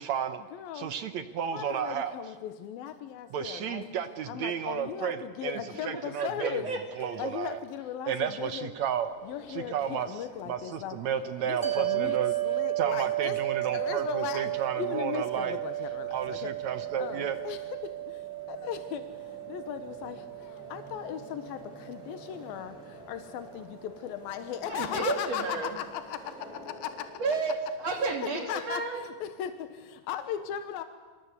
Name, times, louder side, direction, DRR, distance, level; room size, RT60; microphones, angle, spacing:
voice 1, 0.0-0.4 0.8-2.1 3.3-6.6 7.0-7.6 8.1-9.1 9.5-10.1 10.5-12.3 12.8-15.6 16.1-17.4, right 8 dB, 65° right, 10 dB, 1.9 m, -32 dB
voice 2, 0.5-0.9 1.5-3.9 4.3-6.7 7.2-8.7 9.2-11.0 11.4-13.4 13.7-14.5 14.8-16.5 17.0-25.4 25.8-27.1 28.0-30.8, left 10 dB, 85° left, 9 dB, 3.0 m, -38 dB
voice 3, 5.9-7.2 24.7-25.8 27.2-29.0, right 3 dB, 45° right, 4 dB, 3.5 m, -32 dB
sound 1, 8.8-27.4, left 1 dB, ahead, 5.7 m, -51 dB
sound 2, 11.6-24.1, right 17 dB, 25° right, 1.3 m, -34 dB
28.5 x 24.5 x 8.3 m, 1.3 s
omnidirectional pair, 4.2 m